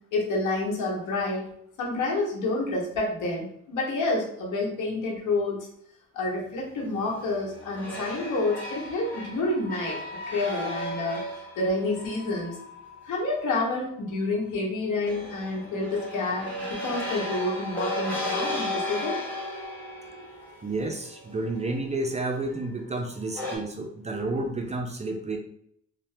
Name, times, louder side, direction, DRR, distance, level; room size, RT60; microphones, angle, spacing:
voice 1, 0.1-1.5 1.8-5.7 6.1-10.0 10.3-11.2 11.6-12.6 13.0-19.2, left 2 dB, 80° left, -2 dB, 1.0 m, -29 dB
sound 1, 6.8-13.6 15.1-22.6 23.3-23.6, left 1 dB, 5° left, 1.3 m, -35 dB
voice 2, 20.6-25.4, right 2 dB, 25° right, 3 dB, 0.4 m, -30 dB
2.7 x 2.1 x 3.3 m, 0.70 s
cardioid pair, 90°, 30 cm